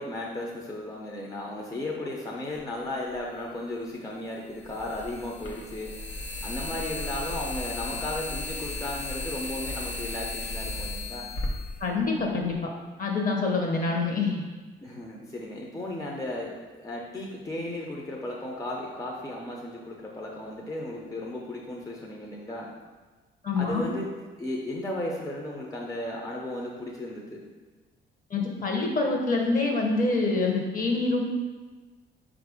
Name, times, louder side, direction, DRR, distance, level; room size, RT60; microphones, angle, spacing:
voice 1, 0.0-11.3 14.8-22.7 23.6-24.1 24.4-27.4, left 1 dB, 15° left, -2 dB, 0.5 m, -35 dB
sound 1, 3.1-3.2 4.6-12.5, left 2 dB, 80° left, 0.9 m, -35 dB
voice 2, 11.8-12.6 13.0-14.4 23.4-23.9 28.3-31.2, left 3 dB, 45° left, 1 dB, 0.9 m, -26 dB
4.3 x 2.5 x 4.8 m, 1.3 s
cardioid pair, 90°, 20 cm